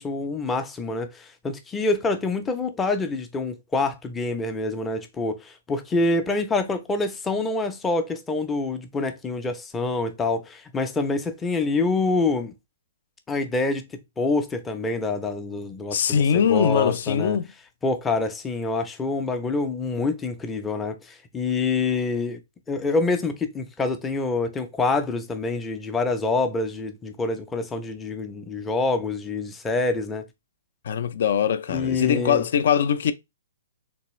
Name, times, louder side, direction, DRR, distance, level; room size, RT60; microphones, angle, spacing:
voice 1, 0.0-12.6 13.3-13.8 14.2-17.4 17.8-22.4 22.7-30.3 31.7-32.5, left 3 dB, 10° left, 0.5 m, -26 dB
voice 2, 15.9-17.5 30.9-33.1, left 8 dB, 60° left, 0.4 m, -22 dB
3.4 x 3.0 x 3.0 m
hypercardioid pair, 155°, 0 cm